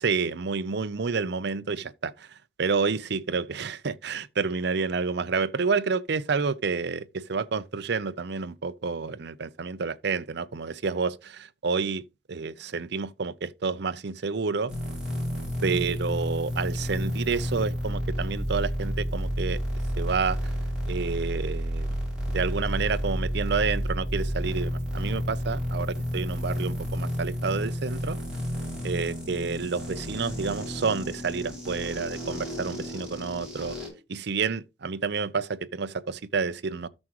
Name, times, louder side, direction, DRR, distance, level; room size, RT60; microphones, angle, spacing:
voice 1, 0.0-14.7 15.6-19.6 20.0-20.4 20.9-22.0 22.3-28.2 28.8-33.8 34.1-36.9, right 5 dB, 65° right, 0.6 m, -29 dB
sound 1, 14.7-33.9, equal, 5° right, 6.1 m, -31 dB
13.0 x 6.2 x 3.0 m
head